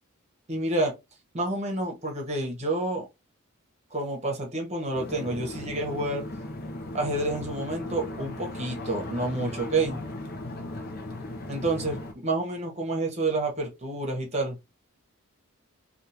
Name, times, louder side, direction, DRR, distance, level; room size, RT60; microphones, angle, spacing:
voice 1, 0.5-0.9 1.3-3.1 3.9-6.2 6.9-10.0 11.5-14.6, right 2 dB, 30° right, 1.1 m, -29 dB
sound 1, 4.9-12.1, left 1 dB, 45° left, 0.6 m, -37 dB
3.5 x 2.4 x 2.8 m
head